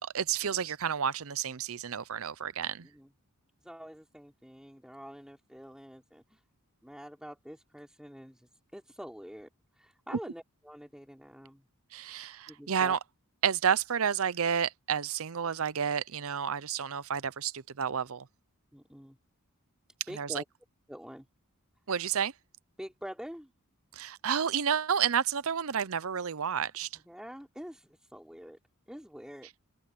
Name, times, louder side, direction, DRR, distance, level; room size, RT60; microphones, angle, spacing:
voice 1, 0.0-2.9 11.9-13.0 13.4-18.3 20.1-20.4 21.9-22.3 24.0-26.9, right 7 dB, 65° right, 0.7 m, -30 dB
voice 2, 3.6-6.4 6.8-9.5 9.8-11.6 12.5-13.0 18.7-19.2 20.1-20.5 20.9-21.3 22.8-23.5 26.9-28.6 28.9-29.5, equal, 5° right, 3.8 m, -46 dB
open air
head